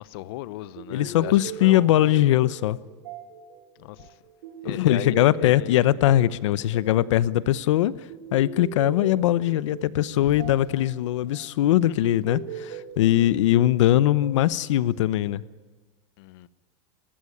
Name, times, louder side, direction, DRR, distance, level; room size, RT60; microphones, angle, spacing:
voice 1, 0.0-2.0 3.8-4.2 4.6-6.1 10.2-10.5 16.2-16.5, left 16 dB, 55° left, 1.0 m, -38 dB
sound 1, 0.8-15.5, right 6 dB, 75° right, 7.1 m, -41 dB
voice 2, 0.9-2.8 4.6-7.9 8.3-15.4, left 13 dB, 85° left, 0.9 m, -21 dB
30.0 x 15.0 x 9.9 m
supercardioid pair, 170°, 15 cm